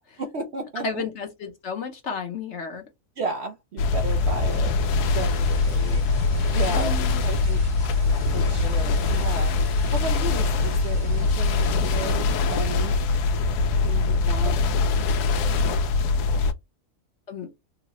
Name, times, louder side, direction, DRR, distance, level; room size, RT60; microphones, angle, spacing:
voice 1, 0.0-1.0 3.2-6.0 6.5-6.9 7.2-7.6 8.3-13.0 13.8-14.6, right 3 dB, 60° right, 0.7 m, -34 dB
voice 2, 0.7-2.8 5.6-5.9 6.8-7.4 17.3-17.5, left 5 dB, 55° left, 0.9 m, -33 dB
sound 1, 3.8-16.5, left 3 dB, 85° left, 1.1 m, -23 dB
sound 2, 4.3-13.4, left 1 dB, 90° right, 1.9 m, -42 dB
3.9 x 2.1 x 2.8 m
omnidirectional pair, 1.6 m